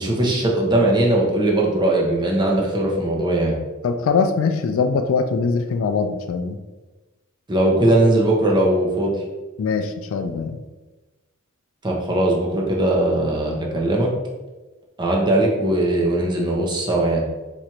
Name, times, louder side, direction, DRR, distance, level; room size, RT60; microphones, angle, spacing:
voice 1, 0.0-3.6 7.5-9.1 11.8-14.1 15.0-17.3, right 1 dB, 20° right, -2 dB, 0.7 m, -19 dB
voice 2, 3.8-6.6 9.6-10.6, left 5 dB, 70° left, 7 dB, 0.3 m, -22 dB
3.0 x 2.5 x 4.3 m, 1.2 s
head